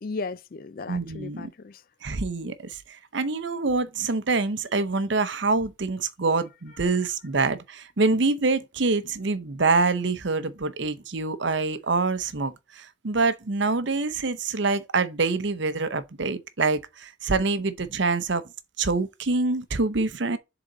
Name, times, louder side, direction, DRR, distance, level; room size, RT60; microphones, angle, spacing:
voice 1, 0.0-1.8, left 4 dB, 45° left, 0.4 m, -35 dB
voice 2, 0.9-1.5 2.0-18.4 18.8-20.4, right 3 dB, 60° right, 0.8 m, -26 dB
7.0 x 3.9 x 3.9 m
head